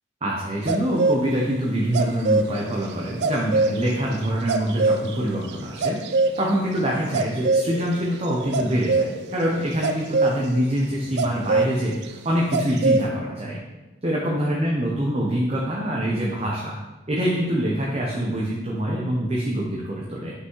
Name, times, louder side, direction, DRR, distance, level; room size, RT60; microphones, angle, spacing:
voice 1, 0.2-6.0 6.4-13.6 14.0-16.8 17.1-20.3, right 1 dB, 35° right, -4 dB, 0.8 m, -25 dB
sound 1, 0.7-1.2 1.7-10.4 11.2-11.7 12.0-12.1 12.5-13.1, right 3 dB, 75° right, 0.4 m, -23 dB
5.9 x 5.6 x 3.1 m, 1.1 s
head